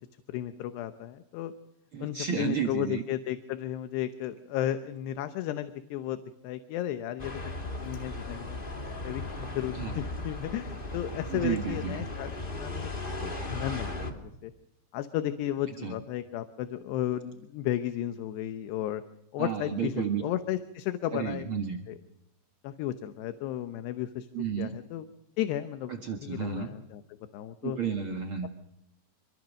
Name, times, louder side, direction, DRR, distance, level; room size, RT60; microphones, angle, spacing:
voice 1, 0.3-1.5 2.0-6.2 6.4-7.3 7.8-8.6 9.0-14.5 14.9-19.0 19.3-21.5 21.9-22.0 22.6-24.3 24.6-25.1 25.4-25.9 26.2-27.0 27.3-27.8, left 12 dB, 75° left, 9 dB, 2.9 m, -34 dB
voice 2, 1.9-3.0 9.7-10.0 11.3-12.0 15.8-16.0 19.4-20.2 21.1-21.8 24.3-24.8 25.9-26.7 27.6-28.5, right 7 dB, 70° right, 4 dB, 1.2 m, -32 dB
sound 1, 7.2-14.1, left 2 dB, 20° left, 1.4 m, -36 dB
26.5 x 22.5 x 6.4 m, 0.83 s
omnidirectional pair, 5.2 m